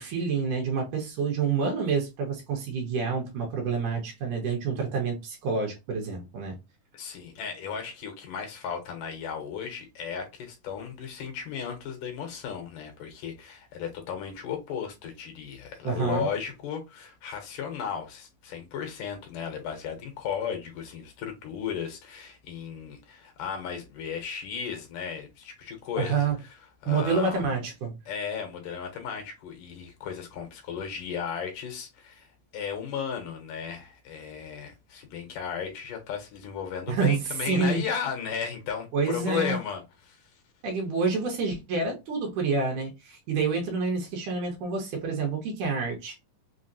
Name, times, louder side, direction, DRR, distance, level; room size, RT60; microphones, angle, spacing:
voice 1, 0.0-6.6 15.8-16.3 26.0-26.4 26.9-28.0 36.9-37.2 37.5-37.8 38.9-39.6 40.6-46.2, right 4 dB, 70° right, 2.2 m, -28 dB
voice 2, 6.9-26.3 26.8-27.4 28.1-40.3, left 7 dB, 75° left, 2.2 m, -35 dB
5.7 x 2.0 x 2.6 m
omnidirectional pair, 4.1 m